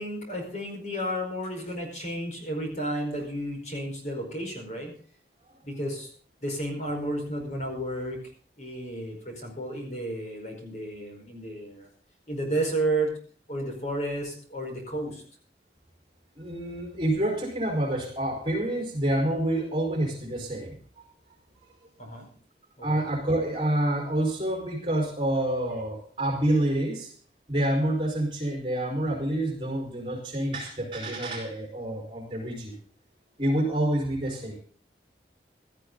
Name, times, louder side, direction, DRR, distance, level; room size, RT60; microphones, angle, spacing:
voice 1, 0.0-4.9 5.6-6.1 6.4-8.2 8.6-11.9 12.3-13.1 13.5-15.2 22.0-22.3 22.8-23.0, right 1 dB, 40° left, 2 dB, 4.9 m, -32 dB
voice 2, 16.3-20.8 22.8-27.1 27.5-32.8 33.4-34.6, right 1 dB, 30° right, 2 dB, 4.6 m, -27 dB
16.5 x 13.5 x 3.9 m, 0.43 s
head